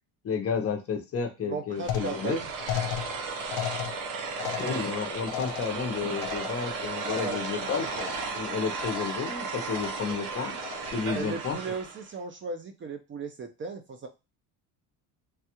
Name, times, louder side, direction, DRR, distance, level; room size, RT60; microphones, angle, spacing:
voice 1, 0.2-2.4 4.6-7.9 8.3-10.6 10.9-11.6, left 6 dB, 35° left, 5 dB, 0.6 m, -31 dB
voice 2, 1.4-2.5 4.4-4.8 7.0-7.4 7.9-8.1 11.1-14.1, right 4 dB, 30° right, 6 dB, 0.5 m, -36 dB
sound 1, 1.8-12.1, right 4 dB, 50° right, 0.8 m, -35 dB
sound 2, 1.9-7.7 7.9-8.5 8.8-9.4 9.7-10.2 10.6-11.1, left 11 dB, 85° left, 0.5 m, -37 dB
3.3 x 2.3 x 2.8 m, 0.26 s
cardioid pair, 110°, 41 cm